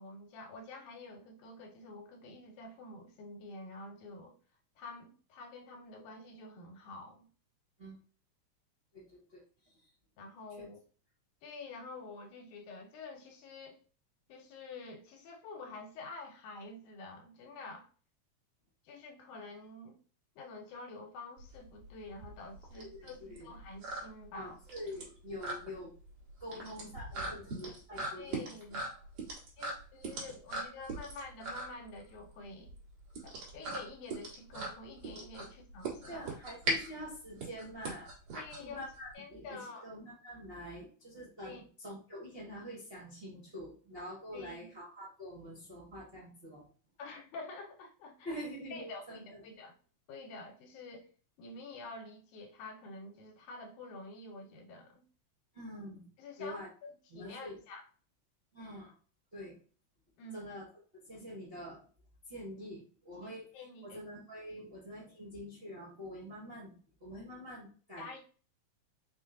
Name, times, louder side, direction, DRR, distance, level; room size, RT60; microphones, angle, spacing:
voice 1, 0.0-4.4 4.8-7.3 10.2-10.8 11.4-13.8 14.3-17.9 18.9-20.0 20.4-24.6 28.2-28.8 29.6-32.7 33.2-36.2 38.4-38.8 39.1-39.9 41.4-41.6 44.3-44.8 47.0-48.3 48.7-49.7 50.1-51.1 51.4-55.1 56.2-57.9 60.2-60.4 63.2-64.0 64.6-64.8 68.0-68.2, left 3 dB, 80° left, 2 dB, 2.2 m, -48 dB
voice 2, 8.9-9.4 10.6-10.7 22.7-23.5 24.3-25.9 26.4-28.5 28.9-29.0 36.1-38.1 38.6-46.7 48.2-49.4 55.5-56.1 56.4-56.7 57.1-57.6 58.5-59.0 59.3-59.6 60.3-60.7 61.0-61.8 62.3-63.5 63.8-68.2, equal, 90° right, -6 dB, 0.5 m, -46 dB
sound 1, 21.4-39.1, right 2 dB, 55° right, 2.2 m, -40 dB
5.2 x 2.2 x 3.7 m, 0.39 s
omnidirectional pair, 3.6 m